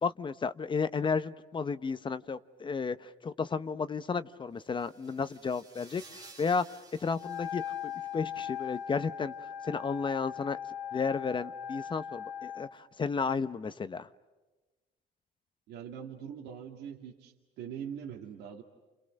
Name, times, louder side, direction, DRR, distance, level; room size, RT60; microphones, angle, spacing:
voice 1, 0.0-6.6 7.0-9.3 9.6-10.6 10.9-14.1, left 5 dB, 30° left, 12 dB, 0.8 m, -33 dB
sound 1, 4.6-8.5, right 3 dB, 20° right, 2.5 m, -55 dB
Wind instrument woodwind instrument, 7.1-12.7, left 9 dB, 80° left, 1.6 m, -39 dB
voice 2, 15.7-18.6, right 8 dB, 80° right, 1 dB, 2.3 m, -42 dB
30.0 x 29.0 x 6.5 m, 1.2 s
cardioid pair, 110°, 17 cm